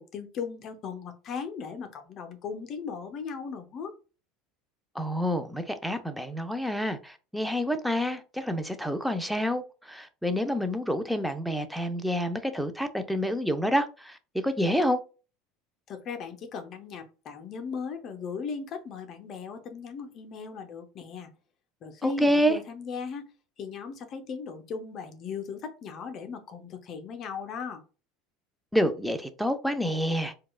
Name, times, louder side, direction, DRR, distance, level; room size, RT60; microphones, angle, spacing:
voice 1, 0.0-3.9 15.9-21.3 21.8-23.3 23.6-27.8, left 5 dB, 45° left, 0.7 m, -37 dB
voice 2, 4.9-14.2 14.4-15.0 22.0-22.6 28.7-30.3, equal, ahead, 0.6 m, -28 dB
4.6 x 2.3 x 2.3 m
hypercardioid pair, 95°, 0 cm